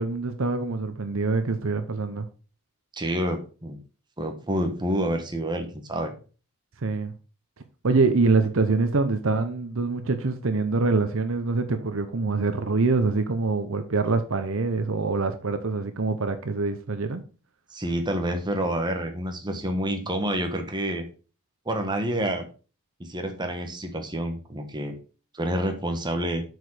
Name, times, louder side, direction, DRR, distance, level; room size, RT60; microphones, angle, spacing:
voice 1, 0.0-2.3 6.8-7.1 7.8-17.2, right 3 dB, 65° right, 0.8 m, -25 dB
voice 2, 2.9-3.8 4.2-6.2 17.7-21.1 21.6-22.5 23.0-24.9 25.3-26.4, right 1 dB, 20° right, 1.3 m, -28 dB
7.8 x 4.9 x 4.9 m
head